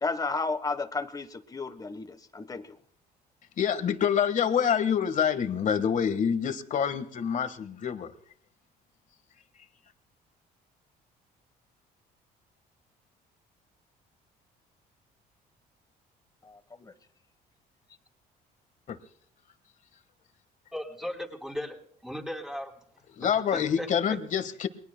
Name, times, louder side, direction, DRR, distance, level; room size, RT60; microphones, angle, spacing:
voice 1, 0.0-2.8 16.4-16.9, left 3 dB, 20° left, 12 dB, 1.2 m, -33 dB
voice 2, 3.6-8.1 18.9-19.0 23.2-24.7, left 8 dB, 50° left, 10 dB, 1.5 m, -26 dB
voice 3, 20.7-21.8 22.0-22.7 23.3-23.9, equal, 5° right, 2 dB, 3.7 m, -36 dB
29.0 x 22.5 x 2.2 m, 0.67 s
cardioid pair, 110°, 17 cm